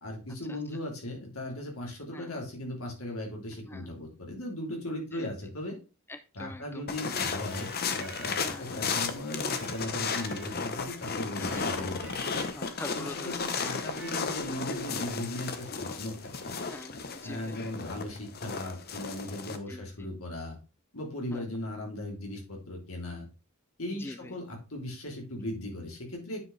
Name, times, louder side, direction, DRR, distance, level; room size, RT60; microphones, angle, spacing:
voice 1, 0.0-5.8 6.3-12.2 12.9-16.6 17.2-20.6 20.9-23.3 23.8-26.4, left 1 dB, 80° left, 0 dB, 3.4 m, -38 dB
voice 2, 6.1-6.8 8.4-8.8 11.4-11.7 12.5-13.4 13.8-13.9 16.5-17.6 19.5-19.9 21.3-21.5 24.0-24.3, left 2 dB, 10° left, 12 dB, 0.4 m, -44 dB
sound 1, 6.9-19.6, left 5 dB, 45° left, 1.0 m, -34 dB
Electric guitar, 7.5-8.9 9.5-10.9 11.5-12.8 13.5-14.7, right 3 dB, 5° right, 1.5 m, -49 dB
9.4 x 5.2 x 3.3 m, 0.30 s
head